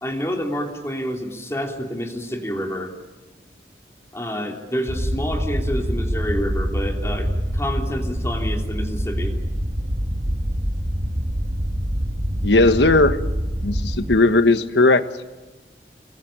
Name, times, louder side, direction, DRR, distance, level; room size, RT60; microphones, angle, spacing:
voice 1, 0.0-2.9 4.1-9.3, equal, 15° left, 3 dB, 3.1 m, -28 dB
sound 1, 4.9-14.2, equal, 40° right, 1.9 m, -25 dB
voice 2, 12.4-13.2 13.6-15.0, left 2 dB, 80° left, 11 dB, 1.4 m, -16 dB
27.0 x 23.5 x 8.9 m, 1.2 s
head